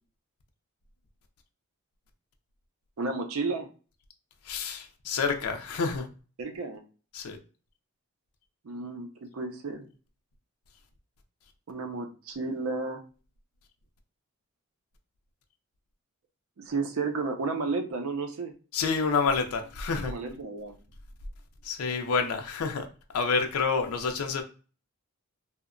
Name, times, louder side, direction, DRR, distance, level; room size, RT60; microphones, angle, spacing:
voice 1, 3.0-3.7 6.4-6.8 8.6-9.9 11.7-13.0 16.6-18.5 20.0-20.7, right 3 dB, 70° right, 5 dB, 0.5 m, -32 dB
voice 2, 4.5-6.1 7.1-7.4 18.7-20.1 21.6-22.8 23.1-24.4, left 5 dB, 85° left, 4 dB, 0.4 m, -28 dB
2.7 x 2.0 x 2.4 m, 0.36 s
head